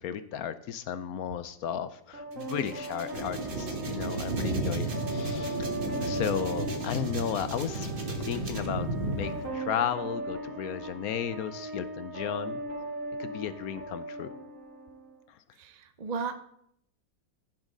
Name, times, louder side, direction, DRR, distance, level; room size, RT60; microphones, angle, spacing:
voice 1, 0.0-5.7 6.0-12.6 13.2-14.3 15.3-15.4, left 9 dB, 70° left, 13 dB, 0.9 m, -34 dB
sound 1, 2.1-15.2, right 1 dB, 45° right, 1.5 m, -38 dB
sound 2, 2.3-8.7, right 3 dB, 30° right, 1.3 m, -46 dB
Thunder, 3.1-9.5, right 2 dB, 80° right, 2.4 m, -33 dB
voice 2, 15.6-16.4, right 5 dB, 65° right, 9 dB, 0.4 m, -35 dB
15.0 x 7.2 x 3.8 m, 0.72 s
omnidirectional pair, 2.0 m